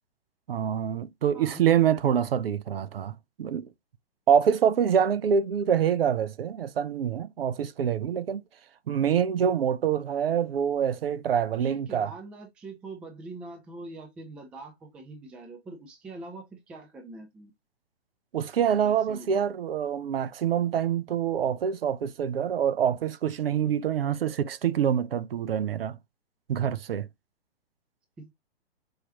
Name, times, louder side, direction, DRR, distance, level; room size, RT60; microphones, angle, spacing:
voice 1, 0.5-3.7 4.3-8.4 8.9-12.1 18.3-26.0 26.5-27.1, right 8 dB, 65° right, 0.6 m, -26 dB
voice 2, 1.3-1.7 11.5-17.5 18.8-19.5 28.2-28.3, right 2 dB, 5° right, 0.3 m, -43 dB
4.8 x 3.0 x 2.7 m
figure-of-eight pair, 125°, 31 cm